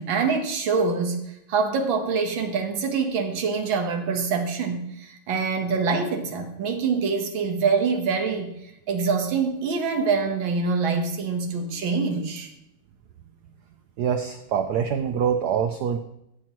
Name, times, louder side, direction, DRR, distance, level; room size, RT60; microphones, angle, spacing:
voice 1, 0.0-8.5 8.9-12.5, right 5 dB, 65° right, 4 dB, 1.9 m, -25 dB
voice 2, 14.0-16.0, right 7 dB, 85° right, 7 dB, 0.8 m, -24 dB
15.0 x 7.3 x 3.0 m, 0.81 s
omnidirectional pair, 2.4 m